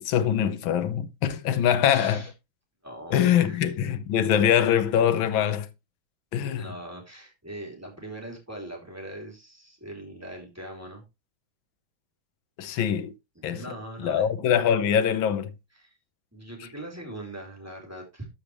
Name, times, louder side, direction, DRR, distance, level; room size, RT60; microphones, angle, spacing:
voice 1, 0.0-2.2 3.1-5.7 6.3-6.7 12.6-13.1 13.4-13.6 14.0-15.5, left 9 dB, 70° left, 1.6 m, -23 dB
voice 2, 1.8-2.3 2.8-3.7 6.5-11.0 13.3-14.3 15.7-16.0 16.3-18.3, right 1 dB, 5° right, 3.1 m, -41 dB
13.5 x 5.1 x 3.2 m
omnidirectional pair, 2.3 m